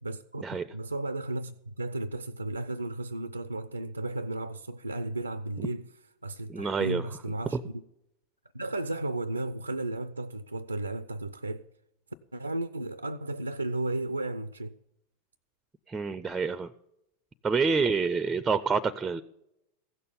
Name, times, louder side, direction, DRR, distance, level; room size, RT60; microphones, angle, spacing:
voice 1, 0.0-5.9 6.2-7.8 8.5-11.6 12.3-14.7, right 2 dB, 85° right, 0.4 m, -34 dB
voice 2, 6.5-7.0 7.5-7.6 15.9-16.7 17.4-19.2, right 5 dB, 15° right, 0.5 m, -27 dB
15.5 x 6.8 x 7.0 m
figure-of-eight pair, 90°, 0 cm